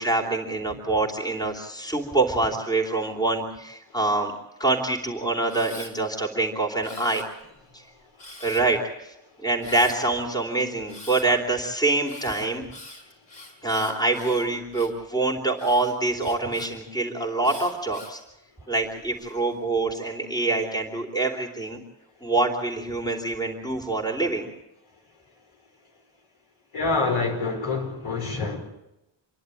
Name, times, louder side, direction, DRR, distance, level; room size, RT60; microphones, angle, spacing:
voice 1, 0.0-4.3 4.6-7.3 8.4-9.1 9.4-12.6 13.6-18.2 18.7-21.8 22.2-24.5, right 2 dB, 10° left, 3.0 m, -25 dB
Camera, 5.5-5.9 6.8-7.6 8.2-8.8 9.6-10.0 10.9-11.3 12.0-15.0 15.6-16.7 17.4-18.2 18.8-19.3, left 2 dB, 70° left, 5.6 m, -44 dB
voice 2, 26.7-28.6, left 3 dB, 85° left, 5.0 m, -26 dB
27.0 x 11.0 x 9.8 m
wide cardioid pair, 150°, 45 cm